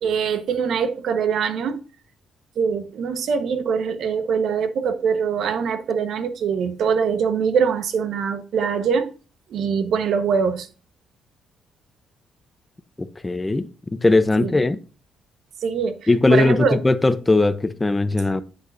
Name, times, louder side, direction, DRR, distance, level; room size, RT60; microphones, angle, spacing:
voice 1, 0.0-1.8 2.6-9.1 9.5-10.7 14.4-14.6 15.6-16.8, right 6 dB, 70° right, 1.3 m, -23 dB
voice 2, 13.0-14.8 16.1-18.4, left 2 dB, 15° left, 0.9 m, -19 dB
9.5 x 8.2 x 2.7 m
cardioid pair, 90°, 0 cm